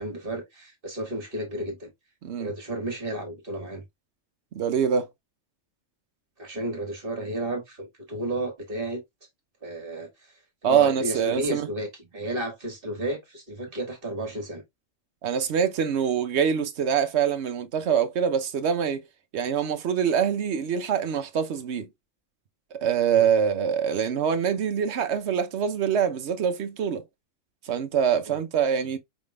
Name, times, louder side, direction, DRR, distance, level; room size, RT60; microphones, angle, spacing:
voice 1, 0.0-1.9 2.4-3.8 6.4-9.0 9.6-10.1 10.6-14.6 23.1-23.3 28.3-28.4, right 1 dB, 45° right, 1.8 m, -32 dB
voice 2, 2.2-2.5 4.5-5.1 10.6-11.7 15.2-19.0 19.3-21.9 22.7-27.0 27.6-29.0, right 7 dB, 65° right, 1.0 m, -24 dB
5.0 x 3.5 x 2.3 m
omnidirectional pair, 1.3 m